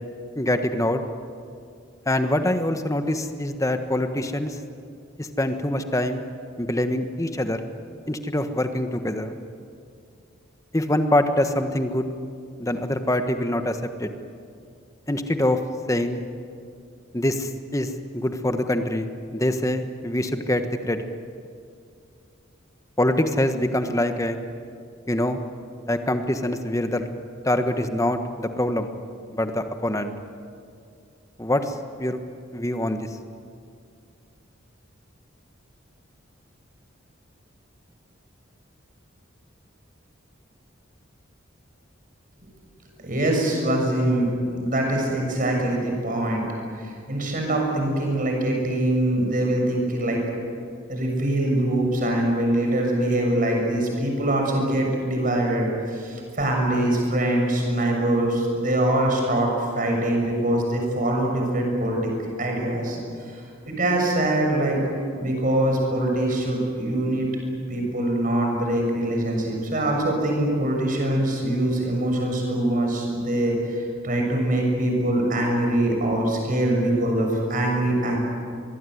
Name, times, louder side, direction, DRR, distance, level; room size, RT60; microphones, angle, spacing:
voice 1, 0.3-1.0 2.1-4.6 5.2-6.2 6.6-7.6 8.1-9.3 10.7-12.1 12.6-14.1 15.1-15.6 15.9-16.2 17.1-19.1 19.3-21.0 23.0-24.4 25.1-25.4 25.9-27.0 27.4-28.9 29.3-30.1 31.4-32.2 32.5-33.1, left 1 dB, 15° left, 7 dB, 1.4 m, -24 dB
voice 2, 43.0-46.4 46.8-50.2 50.9-59.5 59.7-62.1 62.4-63.0 63.2-64.8 65.2-67.3 67.7-78.2, right 1 dB, 45° right, 1 dB, 6.7 m, -23 dB
24.5 x 21.0 x 9.5 m, 2.3 s
head